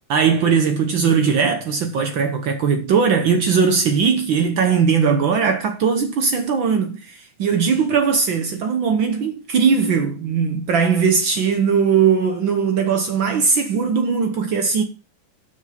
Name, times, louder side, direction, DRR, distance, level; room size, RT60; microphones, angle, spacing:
voice 1, 0.1-14.8, right 6 dB, 65° right, 1.7 m, -19 dB
8.6 x 6.4 x 5.9 m
omnidirectional pair, 2.4 m